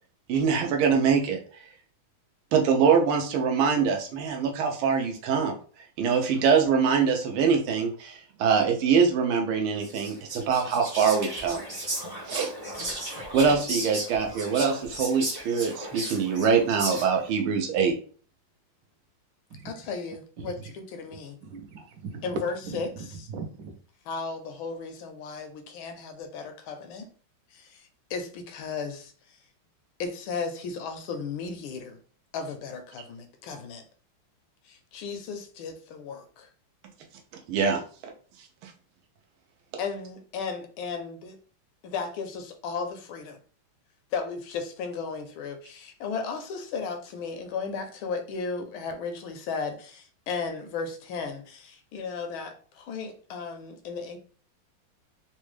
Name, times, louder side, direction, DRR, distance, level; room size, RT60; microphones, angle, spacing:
voice 1, 0.3-1.4 2.5-5.6 6.0-11.6 12.3-12.5 13.3-18.0 37.5-38.1 38.6-38.7, right 6 dB, 90° right, 2 dB, 1.5 m, -24 dB
Whispering, 9.8-17.3, right 1 dB, 35° right, 0.3 m, -35 dB
voice 2, 19.6-21.4 22.2-23.3 24.1-27.1 27.5-29.1 30.0-32.0 32.3-33.8 34.7-36.5 39.8-41.4 41.8-43.4 44.1-54.2, left 5 dB, 80° left, 6 dB, 1.4 m, -35 dB
voice 3, 20.4-20.7 21.1-22.8 23.3-23.8, right 3 dB, 65° right, 4 dB, 1.1 m, -39 dB
3.9 x 2.2 x 3.1 m, 0.43 s
omnidirectional pair, 2.3 m